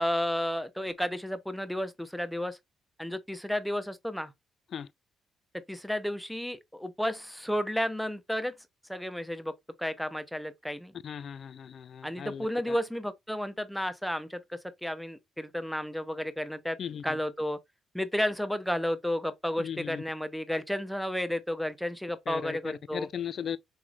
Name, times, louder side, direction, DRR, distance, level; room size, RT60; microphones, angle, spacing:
voice 1, 0.0-2.6 3.0-4.3 5.7-8.5 8.9-10.9 12.0-16.8 17.0-17.6 17.9-23.1, equal, ahead, 0.5 m, -32 dB
voice 2, 11.0-12.8 16.8-17.2 19.6-20.0 22.3-23.6, left 8 dB, 55° left, 0.4 m, -37 dB
5.9 x 3.1 x 2.3 m
cardioid pair, 90°, 0 cm